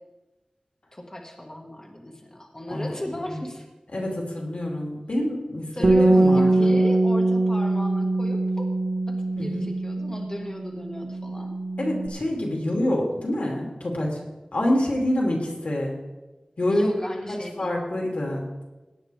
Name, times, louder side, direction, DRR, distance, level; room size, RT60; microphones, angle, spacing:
voice 1, 0.9-3.7 5.7-8.7 9.1-11.5 16.7-17.8, left 1 dB, 30° left, 1 dB, 1.6 m, -36 dB
voice 2, 3.9-5.7 6.0-6.8 9.4-9.7 11.8-14.2 14.5-16.0 16.6-16.9 17.6-18.6, left 1 dB, 85° left, -1 dB, 2.7 m, -26 dB
Bass guitar, 5.8-12.1, right 2 dB, 50° right, 0.9 m, -22 dB
17.0 x 9.6 x 3.4 m, 1.1 s
wide cardioid pair, 55°, 2 cm